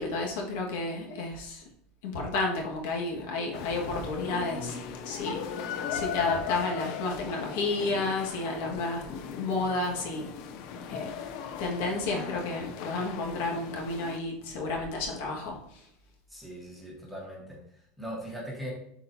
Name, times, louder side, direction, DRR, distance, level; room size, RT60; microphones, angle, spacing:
voice 1, 0.0-1.6 2.0-4.8 5.0-5.4 5.9-10.4 10.9-11.1 11.6-15.6, left 3 dB, 65° left, 0 dB, 1.6 m, -31 dB
sound 1, 3.5-14.2, left 7 dB, 45° left, 0.5 m, -38 dB
voice 2, 16.3-18.7, equal, ahead, -3 dB, 1.3 m, -40 dB
11.5 x 4.1 x 2.7 m, 0.71 s
supercardioid pair, 180°, 0 cm